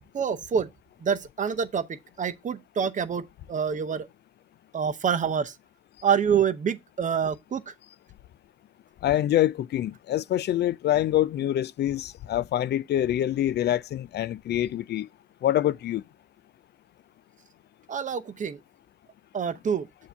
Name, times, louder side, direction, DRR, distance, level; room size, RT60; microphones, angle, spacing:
voice 1, 0.1-0.7 1.0-4.1 4.7-5.5 6.0-7.7 17.9-18.6 19.3-19.9, right 7 dB, 40° right, 0.7 m, -27 dB
voice 2, 9.0-15.1 15.4-16.0, left 12 dB, 60° left, 0.4 m, -25 dB
7.0 x 2.7 x 5.6 m
cardioid pair, 90°, 20 cm